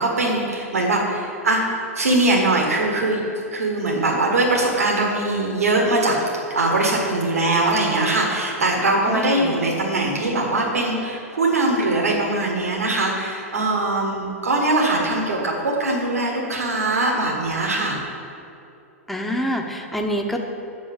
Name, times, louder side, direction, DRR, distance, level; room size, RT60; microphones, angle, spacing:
voice 1, 0.0-1.6 1.9-3.2 3.5-6.2 6.5-18.0, right 2 dB, 85° right, -1 dB, 1.7 m, -21 dB
voice 2, 9.1-9.5 19.1-20.4, left 1 dB, ahead, 2 dB, 0.9 m, -25 dB
7.0 x 6.2 x 7.3 m, 2.7 s
hypercardioid pair, 105°, 8 cm